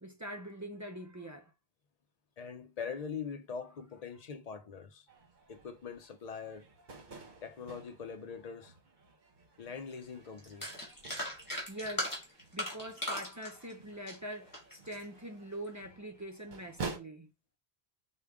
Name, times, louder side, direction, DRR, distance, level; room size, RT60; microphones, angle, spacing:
voice 1, 0.0-1.5 11.7-12.2 12.5-17.3, equal, 30° right, 0.3 m, -43 dB
voice 2, 2.4-5.1 5.5-6.7 7.4-8.7 9.6-10.7, left 6 dB, 50° left, 0.5 m, -42 dB
sound 1, 5.1-17.0, right 4 dB, 50° right, 1.0 m, -50 dB
sound 2, 10.0-10.1 10.4-15.0 15.5-15.8, left 1 dB, 20° left, 1.6 m, -38 dB
4.7 x 2.3 x 3.5 m
omnidirectional pair, 1.1 m